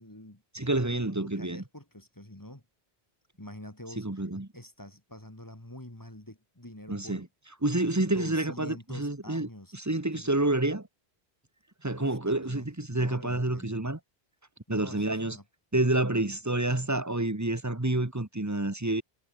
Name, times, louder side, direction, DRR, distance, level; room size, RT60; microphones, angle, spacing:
voice 1, 0.0-0.4 0.9-2.6 3.4-4.1 4.5-7.3 8.0-9.7 10.1-10.4 12.0-13.8 14.7-15.4, left 1 dB, 20° left, 2.7 m, -46 dB
voice 2, 0.5-1.6 4.0-4.5 6.9-7.2 7.6-10.9 11.8-14.0 14.7-15.4 15.7-19.0, right 2 dB, 15° right, 1.6 m, -28 dB
omnidirectional pair, 1.1 m